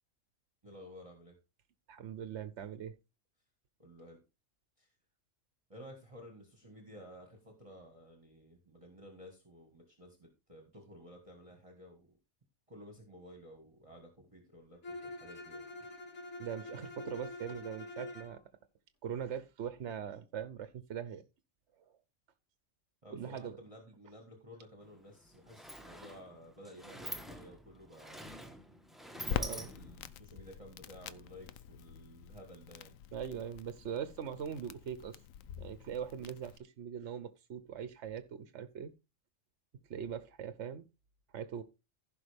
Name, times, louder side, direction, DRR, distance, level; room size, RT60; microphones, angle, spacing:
voice 1, 0.6-1.3 3.8-4.2 4.8-4.9 5.7-12.2 12.7-15.6 23.0-28.8 29.1-33.0, equal, 25° right, 1.7 m, -54 dB
voice 2, 1.9-2.9 16.4-18.4 19.0-21.2 21.9-22.0 23.1-23.6 29.4-29.7 33.1-35.2 35.6-38.9 39.9-40.8 41.3-41.6, right 8 dB, 65° right, 1.0 m, -41 dB
Bowed string instrument, 14.8-18.4, left 2 dB, 60° left, 2.0 m, -46 dB
Sliding door, 24.8-24.9 25.2-30.1, equal, ahead, 1.1 m, -46 dB
Crackle, 29.3-36.6, left 9 dB, 85° left, 1.0 m, -44 dB
15.5 x 5.5 x 3.4 m
omnidirectional pair, 1.3 m